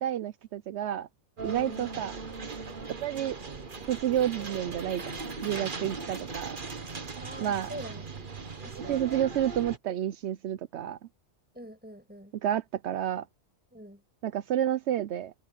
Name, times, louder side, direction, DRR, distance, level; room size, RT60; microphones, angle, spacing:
voice 1, 0.0-1.1 1.4-2.1 3.0-3.4 3.9-5.0 5.4-6.6 7.4-7.7 8.9-11.0 12.4-13.3 14.2-15.3, right 11 dB, 75° right, 0.9 m, -30 dB
sound 1, 1.4-9.8, right 4 dB, 45° right, 1.6 m, -39 dB
voice 2, 1.5-1.8 7.2-8.0 8.6-9.0 11.5-12.3 13.7-14.0, equal, 10° right, 6.9 m, -44 dB
omnidirectional pair, 1.2 m